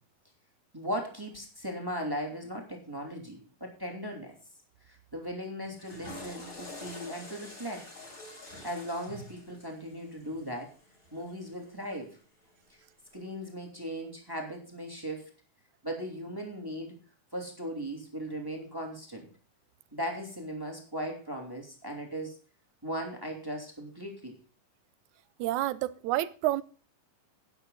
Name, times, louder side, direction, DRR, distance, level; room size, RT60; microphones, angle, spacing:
voice 1, 0.7-4.3 4.9-7.9 8.6-10.7 11.1-12.2 13.1-15.3 15.8-16.9 17.3-19.3 19.9-22.4 22.8-24.4, equal, 5° right, 2.4 m, -38 dB
Water / Toilet flush, 5.6-11.9, left 1 dB, 25° left, 6.0 m, -47 dB
voice 2, 25.4-26.6, right 15 dB, 75° right, 1.9 m, -29 dB
12.5 x 9.6 x 4.0 m
omnidirectional pair, 3.8 m